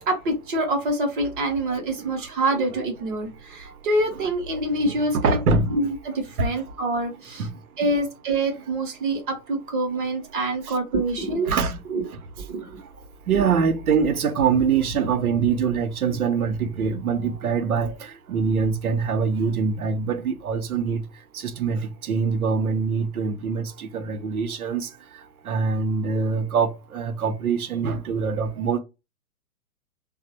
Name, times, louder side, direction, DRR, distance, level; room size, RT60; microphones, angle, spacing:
voice 1, 0.1-5.4 5.7-7.5 7.8-11.5 11.9-12.1 12.5-12.8 13.4-13.5, right 2 dB, 35° right, 0.7 m, -26 dB
voice 2, 4.8-5.8 6.4-6.5 7.4-7.5 10.7-10.8 11.5-11.8 13.3-17.9 18.3-21.0 21.3-24.9 25.5-28.8, right 5 dB, 70° right, 0.7 m, -24 dB
3.2 x 2.0 x 2.8 m
figure-of-eight pair, 115°, 46 cm